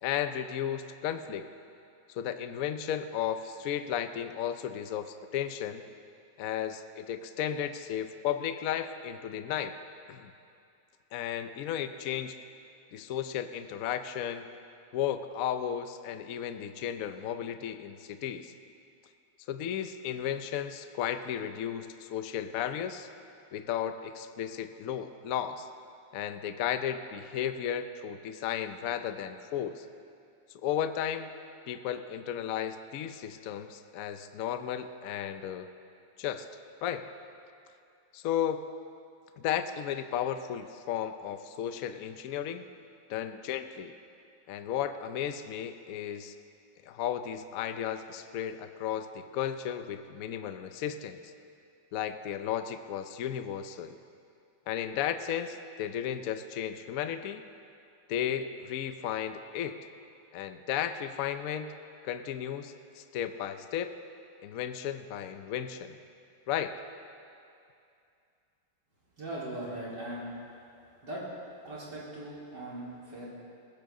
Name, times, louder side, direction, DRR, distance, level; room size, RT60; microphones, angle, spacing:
voice 1, 0.0-1.5 2.1-5.8 6.4-9.7 10.1-10.3 11.1-12.3 12.9-14.5 14.9-18.5 19.5-23.1 23.5-25.7 26.1-29.8 30.6-31.3 31.7-35.7 36.2-36.5 36.8-37.0 38.1-38.6 39.4-42.6 43.1-43.9 44.5-46.3 46.9-51.2 51.9-54.0 54.7-57.4 58.1-59.8 60.3-61.7 62.0-63.9 64.4-66.0 66.5-66.8, left 9 dB, 65° left, 9 dB, 0.9 m, -34 dB
voice 2, 69.2-70.3 71.0-71.2 71.6-73.3, right 1 dB, 65° right, -8 dB, 4.5 m, -39 dB
20.5 x 16.5 x 3.8 m, 2.5 s
omnidirectional pair, 2.0 m